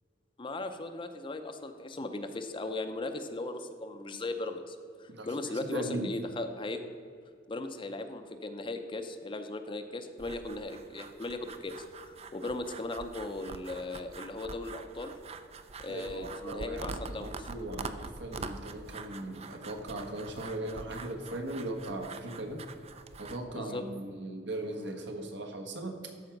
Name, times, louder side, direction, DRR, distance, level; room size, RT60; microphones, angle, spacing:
voice 1, 0.4-6.8 7.5-15.1 15.8-17.5 23.5-23.8, left 2 dB, 25° left, 7 dB, 0.6 m, -38 dB
voice 2, 5.5-6.1 15.9-22.6 23.2-26.1, right 1 dB, 65° right, 4 dB, 1.3 m, -38 dB
sound 1, 10.2-23.4, right 4 dB, 35° right, 0.5 m, -45 dB
13.0 x 5.0 x 5.9 m, 2.2 s
head